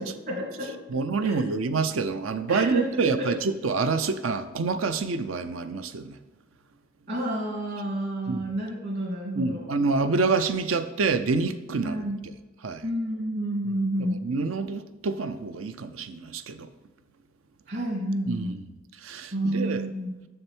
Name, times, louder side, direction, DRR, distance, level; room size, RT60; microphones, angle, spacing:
voice 1, 0.0-0.8 1.2-1.4 2.5-3.4 7.1-9.7 11.8-12.2 12.8-14.2 17.7-18.6 19.3-20.1, right 1 dB, 55° right, -1 dB, 2.5 m, -30 dB
voice 2, 0.9-6.2 8.3-8.4 9.3-12.3 12.6-12.8 14.2-16.7 18.3-18.6 19.0-19.8, right 4 dB, 75° right, 10 dB, 0.5 m, -27 dB
6.8 x 6.6 x 4.4 m, 1.2 s
head